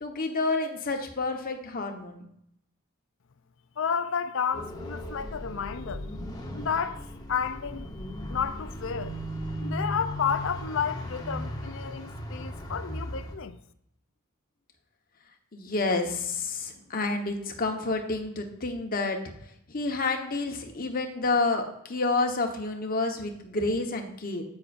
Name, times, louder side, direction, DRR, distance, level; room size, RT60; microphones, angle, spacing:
voice 1, 0.0-2.3 15.5-19.2 19.7-24.4, left 3 dB, 40° left, 1.2 m, -29 dB
voice 2, 3.8-6.1 6.5-7.9 8.3-9.2 9.6-13.6, left 6 dB, 60° left, 0.5 m, -31 dB
sound 1, 4.5-13.3, equal, 15° left, 1.0 m, -37 dB
9.9 x 8.4 x 2.6 m
head